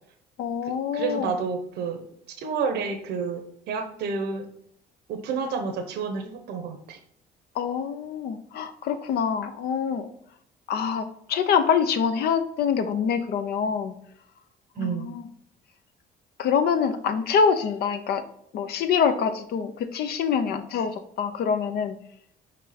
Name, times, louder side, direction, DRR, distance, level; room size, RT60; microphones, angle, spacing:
voice 1, 0.4-1.3 7.5-10.1 10.7-13.9 14.8-15.3 16.4-18.2 18.5-21.9, left 6 dB, 70° left, 9 dB, 0.9 m, -25 dB
voice 2, 0.9-2.0 2.3-4.5 5.1-7.0 14.8-15.1, right 5 dB, 75° right, 6 dB, 1.0 m, -30 dB
5.4 x 5.1 x 4.2 m, 0.70 s
cardioid pair, 110°, 17 cm